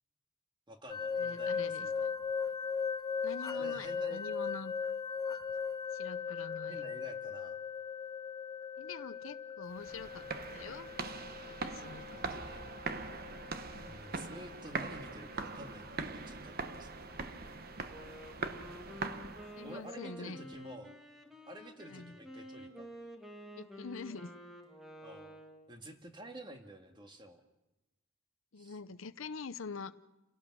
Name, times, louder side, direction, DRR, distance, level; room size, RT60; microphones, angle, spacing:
voice 1, 0.7-2.1 3.5-4.2 6.7-7.6 12.1-12.7 13.8-17.1 19.6-21.0 21.5-22.9 25.0-25.4 25.7-27.4 28.6-28.8, right 1 dB, 20° right, 5 dB, 2.0 m, -50 dB
sound 1, 0.9-15.7, left 6 dB, 20° left, 0.9 m, -39 dB
voice 2, 1.2-2.1 3.2-4.7 5.9-6.9 8.8-10.2 10.5-10.9 11.6-12.2 13.7-14.0 19.6-20.4 21.9-22.1 23.6-24.3 28.5-29.9, left 4 dB, 75° left, 14 dB, 0.7 m, -45 dB
sound 2, 9.7-19.8, right 4 dB, 45° right, 1.0 m, -42 dB
Wind instrument woodwind instrument, 17.9-25.7, equal, ahead, 1.8 m, -50 dB
29.0 x 17.5 x 6.2 m, 1.0 s
head